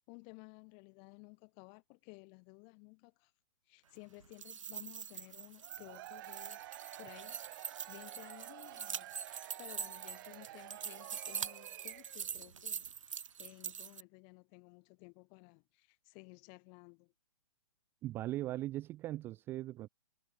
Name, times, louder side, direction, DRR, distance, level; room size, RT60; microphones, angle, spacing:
voice 1, 0.0-3.3 3.7-17.1, left 40 dB or more, 30° left, 2.7 m, -56 dB
sound 1, 4.2-14.0, right 7 dB, 70° right, 0.6 m, -44 dB
Cheering / Crowd, 5.6-12.3, right 17 dB, 40° right, 2.9 m, -51 dB
voice 2, 18.0-19.9, right 15 dB, 15° right, 0.3 m, -39 dB
figure-of-eight pair, 130°, 17 cm